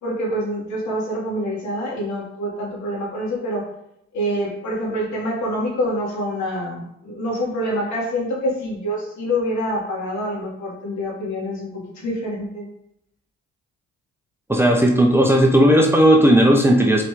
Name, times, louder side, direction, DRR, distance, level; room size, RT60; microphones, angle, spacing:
voice 1, 0.0-3.7 4.1-12.6, equal, 65° left, -4 dB, 2.9 m, -26 dB
voice 2, 14.5-17.1, equal, 10° right, 1 dB, 1.0 m, -15 dB
7.5 x 4.9 x 3.8 m, 0.76 s
cardioid pair, 90°, 30 cm